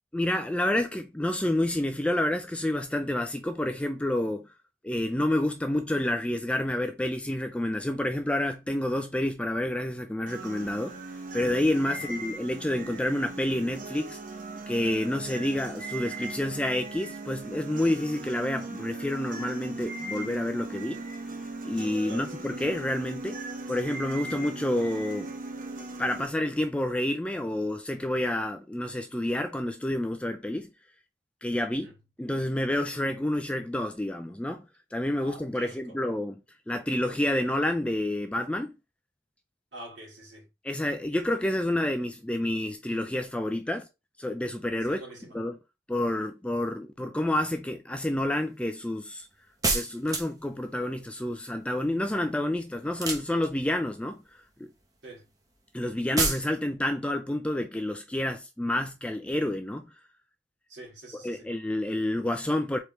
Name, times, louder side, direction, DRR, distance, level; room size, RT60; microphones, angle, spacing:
voice 1, 0.1-4.5 4.8-11.0 11.3-14.2 14.7-21.0 21.6-23.4 23.7-25.3 26.0-30.7 31.4-31.9 32.2-34.6 34.9-36.4 36.7-38.7 40.6-43.8 44.2-45.0 45.3-45.6 45.9-49.3 49.7-54.7 55.7-59.8 61.1-62.8, left 1 dB, 5° left, 0.3 m, -29 dB
sound 1, 10.3-26.3, right 2 dB, 45° right, 0.8 m, -39 dB
voice 2, 35.2-35.9 39.7-40.5 44.8-45.4 55.0-55.3 60.7-61.5, right 2 dB, 65° right, 2.6 m, -45 dB
sound 2, 49.6-50.5 52.9-53.7 56.2-56.5, right 3 dB, 20° right, 0.9 m, -27 dB
4.3 x 3.5 x 3.1 m
head